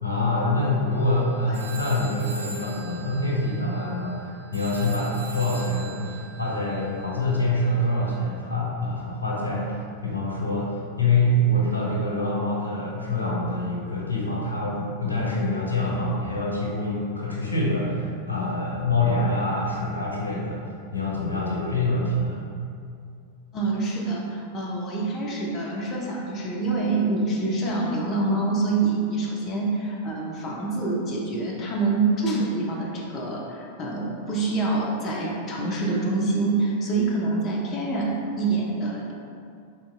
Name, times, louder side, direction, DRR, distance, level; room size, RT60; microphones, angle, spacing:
voice 1, 0.0-9.7 10.0-20.6 20.9-22.4, left 1 dB, 80° left, -4 dB, 0.6 m, -25 dB
sound 1, 0.9-1.2 1.5-8.2, right 3 dB, 65° right, 0.4 m, -42 dB
voice 2, 23.5-39.1, right 3 dB, 30° left, -3 dB, 0.5 m, -26 dB
3.8 x 2.8 x 2.3 m, 2.4 s
figure-of-eight pair, 90°, 0 cm